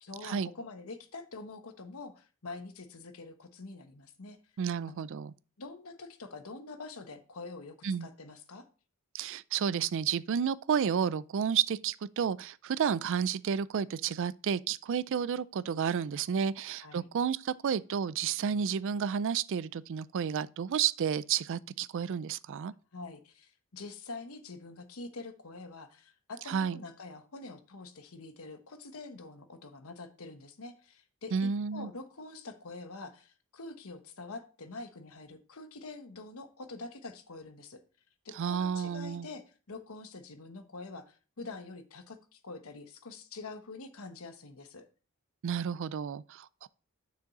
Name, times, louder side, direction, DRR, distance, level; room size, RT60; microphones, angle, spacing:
voice 1, 0.0-4.4 4.9-5.0 5.6-7.8 8.0-8.7 16.8-17.1 22.9-37.8 38.2-44.9, left 3 dB, 75° left, 1.0 m, -45 dB
voice 2, 4.6-5.3 7.8-8.1 9.1-22.7 26.5-26.8 31.3-31.9 38.3-39.3 45.4-46.7, right 7 dB, 60° right, 0.4 m, -31 dB
7.1 x 6.3 x 4.1 m
head